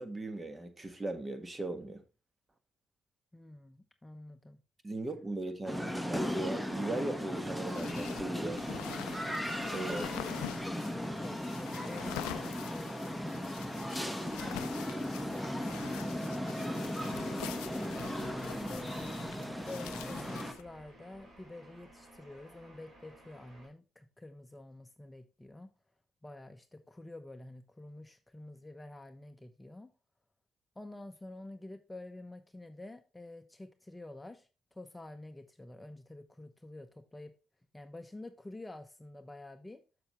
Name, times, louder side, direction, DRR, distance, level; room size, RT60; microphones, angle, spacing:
voice 1, 0.0-2.0 4.8-8.7 9.7-10.0, right 2 dB, 25° right, 1.5 m, -38 dB
voice 2, 3.3-4.6 9.8-10.3 10.6-13.6 14.4-17.9 18.7-19.3 19.6-25.7 26.2-29.9 30.8-37.3 37.7-39.8, left 2 dB, 15° left, 0.8 m, -48 dB
sound 1, 5.7-20.5, equal, 5° right, 1.1 m, -37 dB
sound 2, 7.4-20.6, left 16 dB, 90° left, 0.3 m, -46 dB
sound 3, 17.4-23.7, right 1 dB, 55° right, 4.2 m, -56 dB
6.9 x 6.8 x 3.0 m
supercardioid pair, 55°, 0 cm